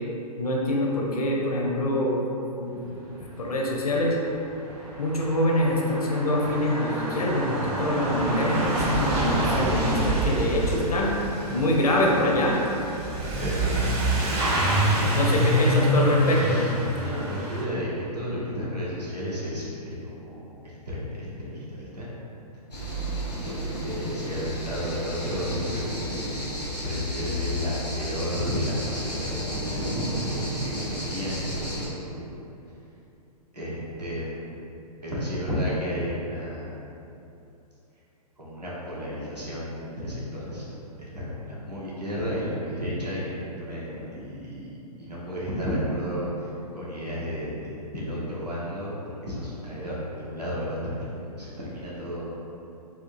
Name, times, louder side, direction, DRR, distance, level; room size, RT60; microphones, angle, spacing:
voice 1, 0.4-2.2 2.6-4.2 5.0-11.1 11.5-12.8 15.1-16.6, left 1 dB, 70° left, -2 dB, 0.6 m, -25 dB
Truck / Accelerating revving vroom, 4.0-4.1 4.2-17.6, right 1 dB, 40° right, 0.8 m, -26 dB
voice 2, 17.0-20.5 20.9-22.1 23.4-29.9 30.1-32.2 33.5-34.5 35.0-36.7 38.4-40.6 41.0-52.3, equal, 85° right, -8 dB, 1.1 m, -32 dB
sound 1, 22.7-31.9, equal, 85° left, 1.1 m, -32 dB
4.3 x 2.2 x 2.6 m, 2.8 s
figure-of-eight pair, 115°, 20 cm